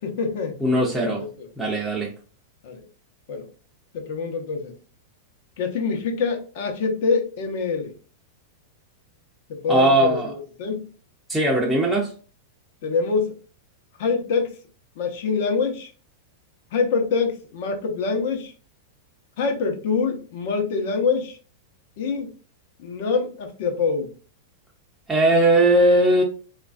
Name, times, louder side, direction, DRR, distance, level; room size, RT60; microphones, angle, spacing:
voice 1, 0.0-0.9 1.2-1.5 2.6-2.8 3.3-3.5 3.9-4.7 5.6-7.9 9.5-10.9 12.8-13.3 14.0-14.6 15.0-15.9 16.7-18.5 19.4-21.4 22.0-22.3 22.8-24.1, left 5 dB, 60° left, 4 dB, 0.8 m, -25 dB
voice 2, 0.6-1.2 1.6-2.1 9.7-10.3 11.3-12.1 25.1-26.2, right 1 dB, 5° right, -3 dB, 0.5 m, -19 dB
3.1 x 2.4 x 2.3 m, 0.37 s
supercardioid pair, 145°, 0 cm